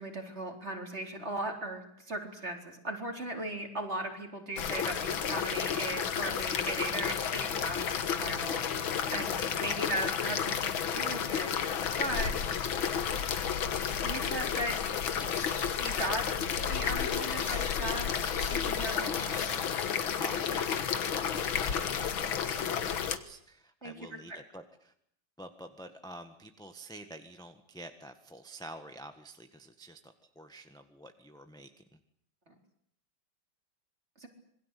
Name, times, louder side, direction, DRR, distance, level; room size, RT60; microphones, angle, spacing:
voice 1, 0.0-11.5 12.0-12.6 14.0-14.7 15.8-16.2 16.7-18.1 18.5-19.4 23.8-23.9 24.3-24.4 32.5-32.6 34.2-34.3, right 1 dB, 35° right, 3 dB, 4.4 m, -37 dB
sound 1, 4.6-23.2, left 8 dB, 85° left, 2.2 m, -32 dB
voice 2, 9.3-9.8 18.7-19.4 20.2-24.9 25.4-31.8, right 1 dB, ahead, 7 dB, 1.3 m, -48 dB
sound 2, 15.1-15.7 16.4-19.8, left 3 dB, 35° left, 3.3 m, -46 dB
27.0 x 21.5 x 8.4 m, 0.69 s
omnidirectional pair, 2.1 m